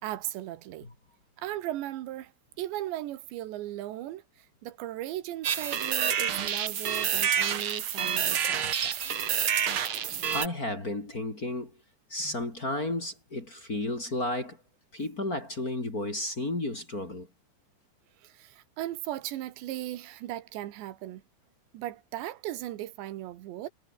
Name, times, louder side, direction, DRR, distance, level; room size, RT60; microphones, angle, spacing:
voice 1, 0.0-0.9 1.4-2.3 2.6-4.2 4.6-9.0 12.3-12.4 18.2-21.2 21.7-23.7, right 14 dB, 80° right, 3.7 m, -37 dB
sound 1, 5.4-10.5, right 8 dB, 65° right, 1.3 m, -28 dB
voice 2, 10.3-11.8 12.1-14.6 14.9-17.3, left 2 dB, 20° left, 3.4 m, -33 dB
omnidirectional pair, 5.0 m